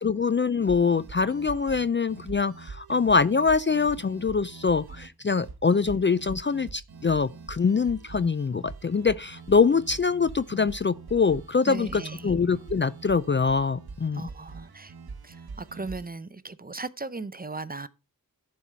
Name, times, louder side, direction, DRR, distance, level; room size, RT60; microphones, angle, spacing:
voice 1, 0.0-14.2, left 5 dB, 35° left, 0.4 m, -24 dB
neon synth, 0.6-16.1, right 4 dB, 85° right, 1.1 m, -44 dB
voice 2, 11.6-12.3 14.1-14.9 15.2-17.9, right 3 dB, 25° right, 0.6 m, -37 dB
11.0 x 4.7 x 5.5 m
wide cardioid pair, 85°, 36 cm